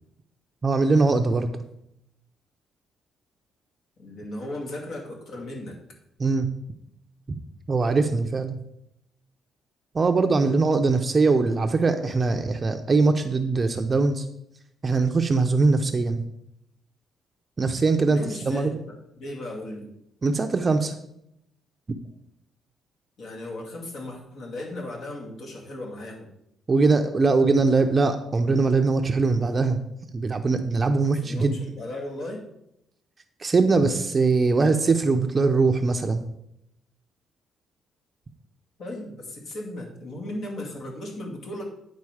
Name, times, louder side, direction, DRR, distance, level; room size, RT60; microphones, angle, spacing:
voice 1, 0.6-1.5 6.2-6.5 7.7-8.6 9.9-14.3 14.8-16.2 17.6-18.2 18.5-18.8 20.2-20.9 26.7-29.8 30.1-31.6 33.4-36.2, right 3 dB, 35° right, 6 dB, 0.6 m, -21 dB
voice 2, 4.0-5.8 18.1-18.7 19.2-19.9 23.2-26.3 31.2-32.4 38.8-41.6, left 1 dB, 70° left, 0 dB, 2.3 m, -36 dB
9.7 x 4.0 x 4.9 m, 0.79 s
cardioid pair, 90°, 0 cm